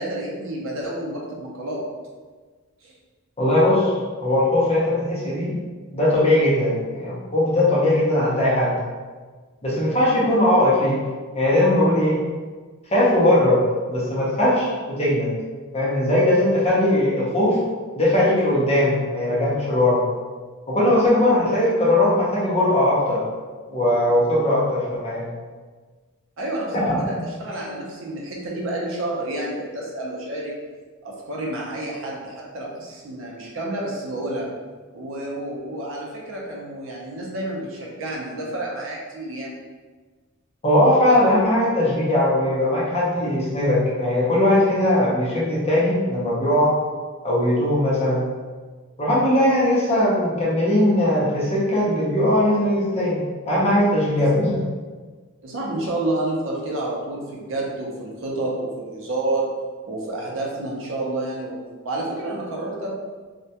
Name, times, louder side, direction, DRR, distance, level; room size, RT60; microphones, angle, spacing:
voice 1, 0.0-1.8 2.8-2.9 26.4-30.6 31.0-34.5 34.9-39.5 54.2-54.3 55.4-59.5 59.9-61.6 61.8-63.0, right 2 dB, 60° right, -3 dB, 0.5 m, -29 dB
voice 2, 3.4-3.9 4.2-5.5 5.9-8.7 9.6-11.0 11.3-12.2 12.9-13.6 13.9-15.3 15.7-17.6 18.0-20.0 20.7-23.2 23.7-25.3 26.7-27.1 40.6-46.7 47.2-48.2 49.0-54.6, left 1 dB, 30° left, -6 dB, 0.5 m, -19 dB
2.2 x 2.1 x 2.7 m, 1.4 s
head